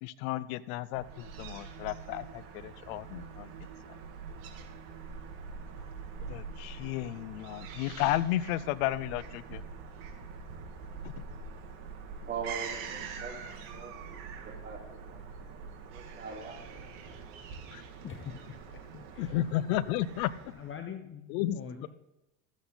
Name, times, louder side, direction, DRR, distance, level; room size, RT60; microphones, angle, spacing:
voice 1, 0.0-3.5 6.3-9.6 17.7-17.8 19.2-20.3 21.3-21.9, left 14 dB, 70° left, 17 dB, 0.7 m, -33 dB
Fowl / Gull seagull, 0.9-20.8, right 5 dB, 60° right, 2.1 m, -44 dB
voice 2, 12.2-13.9 14.4-15.2 15.9-17.1 19.3-19.4, right 5 dB, 25° right, -4 dB, 4.2 m, -42 dB
voice 3, 18.0-19.3 20.5-21.9, left 7 dB, 30° left, 7 dB, 0.8 m, -44 dB
13.5 x 8.4 x 4.0 m, 0.95 s
supercardioid pair, 120°, 44 cm